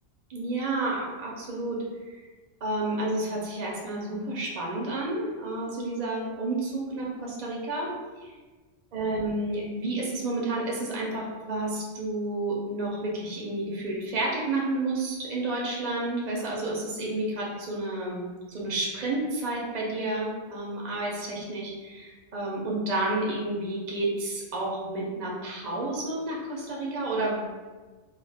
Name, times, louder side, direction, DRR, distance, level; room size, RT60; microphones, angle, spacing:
voice 1, 0.3-2.2 2.6-7.9 8.2-8.3 8.9-27.4, right 2 dB, 50° right, -3 dB, 0.5 m, -30 dB
2.3 x 2.2 x 3.3 m, 1.3 s
omnidirectional pair, 1.2 m